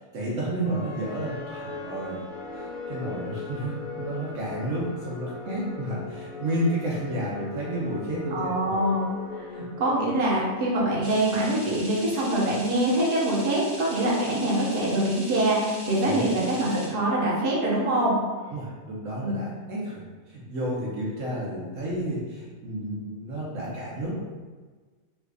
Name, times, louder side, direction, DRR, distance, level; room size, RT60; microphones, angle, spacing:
voice 1, 0.0-2.2 2.5-8.8 9.5-9.7 16.0-16.3 18.5-24.2, right 1 dB, 70° right, -6 dB, 1.1 m, -31 dB
sound 1, 0.6-10.8, left 4 dB, 85° left, 1.1 m, -39 dB
voice 2, 8.3-9.1 9.8-18.2 19.2-19.3, right 1 dB, 45° right, -6 dB, 1.0 m, -24 dB
sound 2, 11.0-16.9, right 1 dB, 90° right, 1.4 m, -41 dB
3.1 x 2.5 x 3.3 m, 1.4 s
omnidirectional pair, 1.4 m